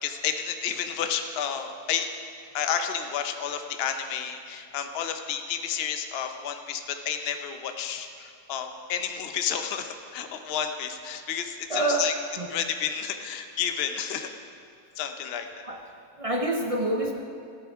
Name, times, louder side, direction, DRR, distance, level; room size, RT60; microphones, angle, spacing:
voice 1, 0.0-2.1 2.5-12.1 12.5-14.3 15.0-15.5, left 8 dB, 50° left, 7 dB, 0.8 m, -31 dB
voice 2, 11.7-12.1 12.4-12.5 15.6-15.8 16.2-17.1, right 1 dB, 45° right, 2 dB, 0.4 m, -26 dB
14.5 x 12.0 x 3.6 m, 2.4 s
omnidirectional pair, 1.6 m